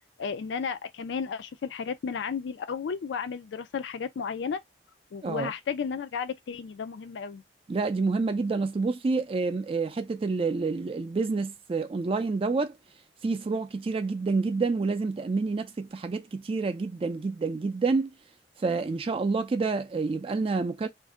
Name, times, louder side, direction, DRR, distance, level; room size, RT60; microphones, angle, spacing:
voice 1, 0.2-4.6 5.1-7.4, left 6 dB, 75° left, 0.4 m, -33 dB
voice 2, 7.7-12.7 13.2-18.1 18.6-20.9, right 4 dB, 30° right, 0.3 m, -28 dB
2.6 x 2.1 x 3.4 m
head